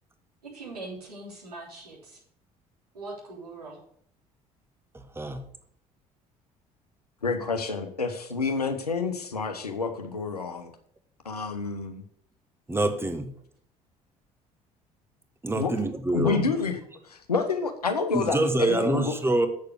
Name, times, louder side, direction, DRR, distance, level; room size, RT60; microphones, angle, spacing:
voice 1, 0.4-2.2 2.9-3.8, right 2 dB, 80° right, -5 dB, 3.4 m, -41 dB
voice 2, 7.2-10.7 11.2-12.0 15.6-15.7 16.1-16.8 17.0-19.1, left 4 dB, 85° left, 7 dB, 1.0 m, -28 dB
voice 3, 12.7-13.3 15.4-16.5 18.1-19.5, right 2 dB, 10° right, 7 dB, 1.3 m, -26 dB
8.3 x 6.7 x 6.6 m, 0.64 s
figure-of-eight pair, 55°, 19 cm